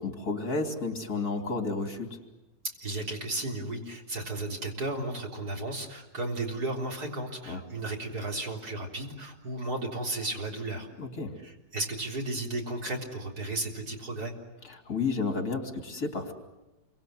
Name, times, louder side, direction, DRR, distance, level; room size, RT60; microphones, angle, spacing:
voice 1, 0.0-2.2 7.5-7.6 11.0-11.4 14.6-16.3, left 3 dB, 55° left, 4 dB, 3.5 m, -32 dB
voice 2, 2.8-10.9 11.4-14.3, right 2 dB, 55° right, 0 dB, 4.3 m, -34 dB
28.5 x 24.5 x 7.9 m, 1.0 s
omnidirectional pair, 1.9 m